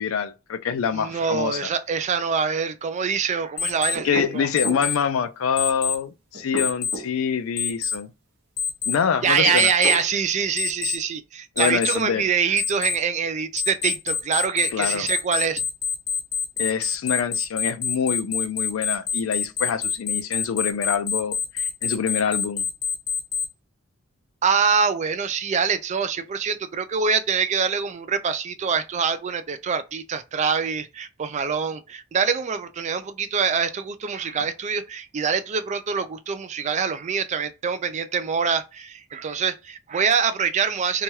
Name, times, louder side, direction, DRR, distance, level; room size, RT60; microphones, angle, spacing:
voice 1, 0.0-1.7 4.0-8.1 8.9-9.7 11.6-12.2 14.7-15.1 16.6-22.6, left 7 dB, 85° left, 0.4 m, -25 dB
voice 2, 0.9-4.5 9.2-15.6 24.4-41.0, right 6 dB, 35° right, 0.3 m, -24 dB
Alarm, 3.6-4.0 4.6-5.0 5.6-6.0 6.6-7.0 7.6-8.0 8.6-9.0 9.6-10.0 10.6-11.0 11.6-12.0 12.6-13.0 13.6-23.5, left 6 dB, 45° left, 0.7 m, -26 dB
sound 1, 3.9-4.9 6.3-7.1 9.3-10.1, right 1 dB, 60° right, 0.8 m, -32 dB
2.9 x 2.3 x 3.0 m
head